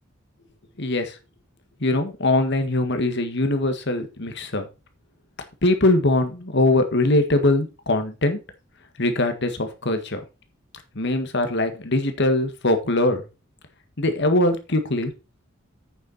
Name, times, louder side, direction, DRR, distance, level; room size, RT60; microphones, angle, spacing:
voice 1, 0.8-1.2 1.8-4.7 5.6-8.4 9.0-10.2 11.0-13.3 14.0-15.1, left 2 dB, 60° left, 8 dB, 1.8 m, -22 dB
9.0 x 6.7 x 4.3 m, 0.30 s
head